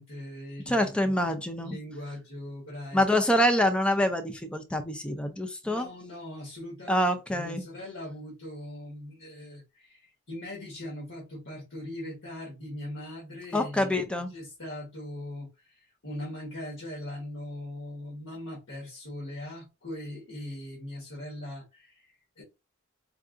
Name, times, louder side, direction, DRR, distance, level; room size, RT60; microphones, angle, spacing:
voice 1, 0.0-1.1 1.6-3.0 5.6-13.9 14.3-22.4, left 1 dB, 80° left, 1.4 m, -40 dB
voice 2, 0.7-1.8 2.9-5.9 6.9-7.6 13.5-14.3, left 1 dB, 5° left, 0.4 m, -26 dB
4.6 x 2.5 x 2.4 m
head